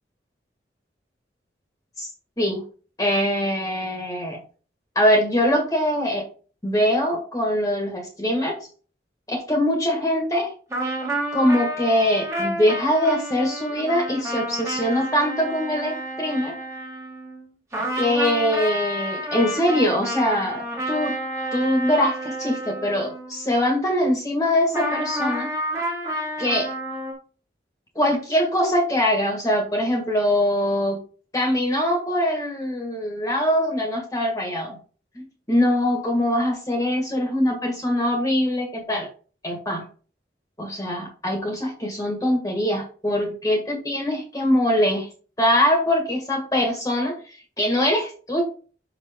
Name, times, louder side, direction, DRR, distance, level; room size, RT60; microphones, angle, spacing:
voice 1, 3.0-4.4 4.9-6.2 6.6-8.6 9.3-10.5 11.3-16.6 17.9-21.2 21.5-25.5 26.4-26.7 27.9-31.0 31.3-34.8 35.1-39.1 39.4-39.9 40.6-45.1 45.4-47.1 47.6-48.4, left 1 dB, 20° left, 1 dB, 1.8 m, -22 dB
sound 1, 10.7-17.5 17.7-23.7 24.7-27.1, right 1 dB, 15° right, 2.0 m, -30 dB
5.9 x 5.9 x 3.6 m, 0.38 s
head